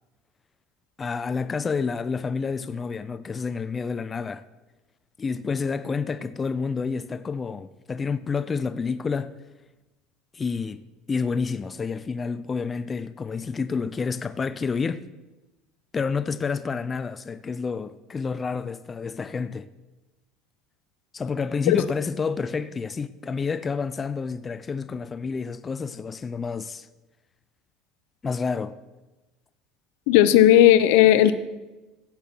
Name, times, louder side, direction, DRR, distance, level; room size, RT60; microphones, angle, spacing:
voice 1, 1.0-4.4 5.2-9.4 10.3-10.8 11.1-15.0 15.9-19.7 21.1-26.9 28.2-28.8, left 5 dB, 20° left, 0.4 m, -29 dB
voice 2, 30.1-31.4, left 12 dB, 80° left, 0.8 m, -15 dB
16.0 x 7.2 x 6.0 m
cardioid pair, 150°, 0 cm